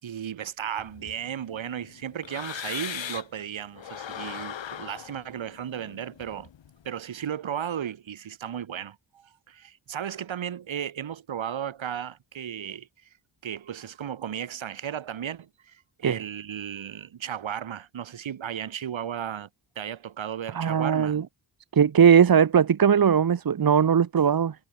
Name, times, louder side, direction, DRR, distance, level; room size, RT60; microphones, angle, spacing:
voice 1, 0.0-6.5 6.8-13.1 13.4-19.5 19.7-21.2, right 9 dB, 80° right, 5.0 m, -35 dB
sound 1, 0.8-3.4 3.8-6.8, left 9 dB, 70° left, 3.5 m, -39 dB
voice 2, 20.5-21.2 21.7-24.6, right 7 dB, 50° right, 2.0 m, -19 dB
wide cardioid pair, 160°, 46 cm